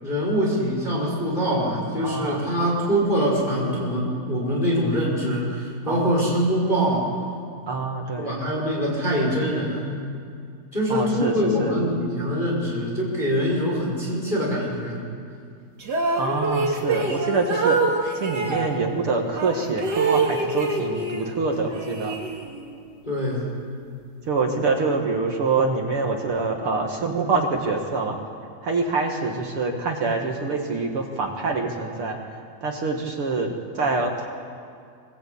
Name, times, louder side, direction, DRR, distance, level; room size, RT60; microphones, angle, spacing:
voice 1, 0.0-7.1 8.2-10.0 10.7-15.0 23.1-23.5, equal, 10° left, -3 dB, 5.6 m, -24 dB
voice 2, 2.0-2.4 5.9-6.3 7.7-8.5 10.9-11.8 16.2-22.1 24.3-28.2 28.6-32.2 32.6-34.3, right 3 dB, 45° right, 2 dB, 2.0 m, -25 dB
sound 1, 15.8-18.7 19.3-21.3 21.6-22.7, right 3 dB, 30° right, 2.7 m, -25 dB
24.5 x 22.0 x 8.6 m, 2.3 s
omnidirectional pair, 4.6 m